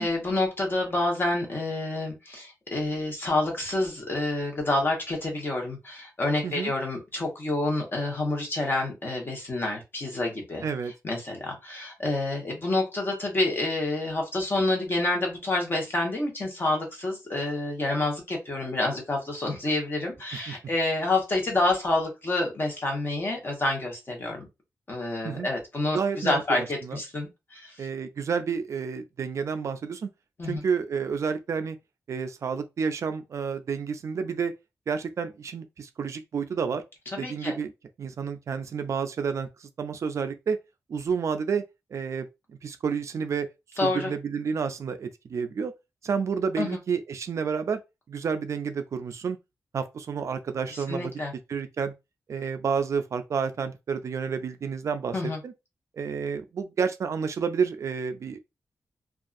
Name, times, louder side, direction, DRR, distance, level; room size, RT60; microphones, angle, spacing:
voice 1, 0.0-10.6 11.0-24.5 24.9-27.9 30.4-30.6 37.1-37.5 43.8-44.1 46.6-46.8 50.7-51.3 55.1-55.4, left 2 dB, 40° left, 1.1 m, -28 dB
voice 2, 10.6-10.9 20.5-20.6 25.2-25.5 25.9-27.0 27.8-30.1 30.4-31.8 32.1-34.5 34.9-36.8 37.2-37.7 38.0-40.6 40.9-41.6 41.9-43.5 43.8-45.7 46.0-47.8 48.1-49.4 49.7-51.1 51.5-51.9 52.3-55.2 55.4-55.5 55.9-58.4, right 6 dB, 60° right, 0.3 m, -30 dB
2.6 x 2.3 x 2.5 m
wide cardioid pair, 115°, 6 cm